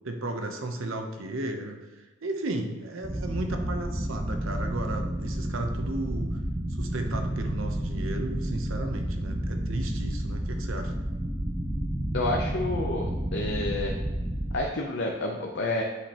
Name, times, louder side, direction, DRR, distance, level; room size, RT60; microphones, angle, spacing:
voice 1, 0.0-6.4 6.8-10.9, right 2 dB, 70° right, 5 dB, 0.8 m, -34 dB
sound 1, 3.0-14.6, right 1 dB, 20° right, 0.6 m, -31 dB
voice 2, 12.1-13.9 14.5-15.8, left 2 dB, 55° left, 0 dB, 0.6 m, -29 dB
8.0 x 5.0 x 2.9 m, 1.2 s
head